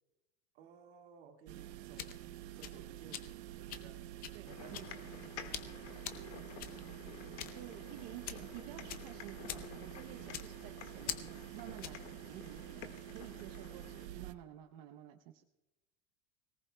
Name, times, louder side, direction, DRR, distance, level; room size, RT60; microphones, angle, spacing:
voice 1, 0.5-4.8 5.6-7.9 13.2-14.2, right 7 dB, 65° right, 3 dB, 2.0 m, -59 dB
sound 1, 1.5-14.3, right 14 dB, 80° right, 0.8 m, -48 dB
sound 2, 1.7-12.1, left 10 dB, 25° left, 0.6 m, -47 dB
voice 2, 4.3-5.1 7.5-12.9 13.1-15.4, right 12 dB, 45° right, 5 dB, 0.7 m, -52 dB
sound 3, 4.5-14.1, left 9 dB, 85° left, 1.7 m, -52 dB
24.5 x 18.0 x 2.2 m, 1.0 s
supercardioid pair, 180°, 33 cm